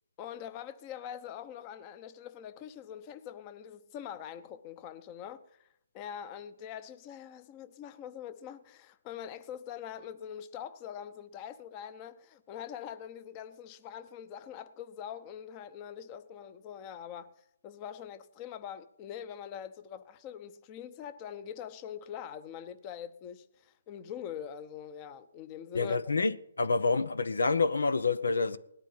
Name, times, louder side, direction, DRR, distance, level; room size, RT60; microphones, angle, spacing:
voice 1, 0.2-5.7 5.9-17.3 17.6-26.0, left 9 dB, 25° left, 0.9 m, -43 dB
voice 2, 25.7-26.3 26.6-28.6, left 4 dB, 80° left, 0.9 m, -27 dB
18.5 x 12.0 x 5.7 m
hypercardioid pair, 145°, 0 cm